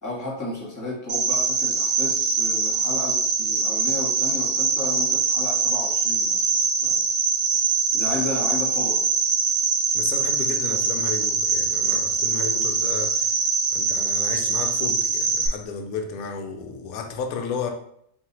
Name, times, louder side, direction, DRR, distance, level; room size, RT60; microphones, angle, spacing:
voice 1, 0.0-7.0 7.9-9.1, left 2 dB, 10° left, 1.2 m, -33 dB
Cricket, 1.1-15.5, right 5 dB, 90° right, 1.4 m, -23 dB
voice 2, 9.9-13.4 13.7-17.7, left 5 dB, 70° left, 1.0 m, -33 dB
4.0 x 3.2 x 2.9 m
omnidirectional pair, 1.8 m